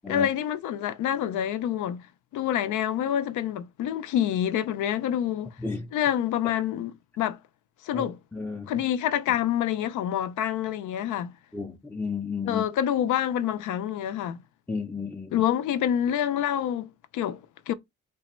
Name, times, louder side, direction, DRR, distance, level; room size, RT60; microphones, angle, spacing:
voice 1, 0.0-2.1 2.3-5.5 5.9-7.4 7.8-8.2 8.7-11.3 12.5-14.4 15.3-17.7, left 10 dB, 80° left, 0.5 m, -27 dB
voice 2, 5.6-5.9 7.9-8.1 8.3-8.7 11.5-12.7 14.7-15.5, left 4 dB, 5° left, 0.4 m, -33 dB
3.3 x 2.1 x 4.2 m
cardioid pair, 90°, 30 cm